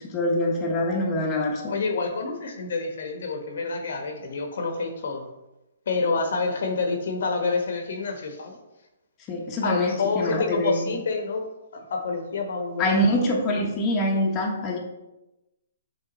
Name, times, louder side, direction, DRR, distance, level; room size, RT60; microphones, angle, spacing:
voice 1, 0.1-1.7 9.3-10.9 12.8-14.8, left 1 dB, 25° left, -1 dB, 1.1 m, -24 dB
voice 2, 1.7-5.3 5.9-8.6 9.6-11.4 11.7-13.0, left 4 dB, 65° left, 4 dB, 1.1 m, -28 dB
6.6 x 3.4 x 4.3 m, 0.97 s
hypercardioid pair, 150°, 0 cm